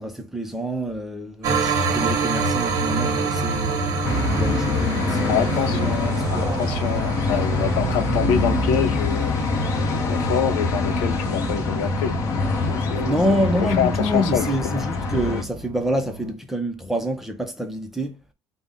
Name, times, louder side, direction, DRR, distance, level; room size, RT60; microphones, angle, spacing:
voice 1, 0.0-3.9 4.3-6.6 12.9-18.2, equal, 5° right, 0.5 m, -27 dB
sound 1, 1.4-16.3, right 3 dB, 35° right, 0.7 m, -28 dB
sound 2, 4.0-15.4, left 3 dB, 35° left, 0.7 m, -24 dB
voice 2, 5.2-9.3 9.8-12.2 12.7-14.8, left 8 dB, 90° left, 0.6 m, -26 dB
5.2 x 2.0 x 3.5 m
cardioid pair, 175°, 10 cm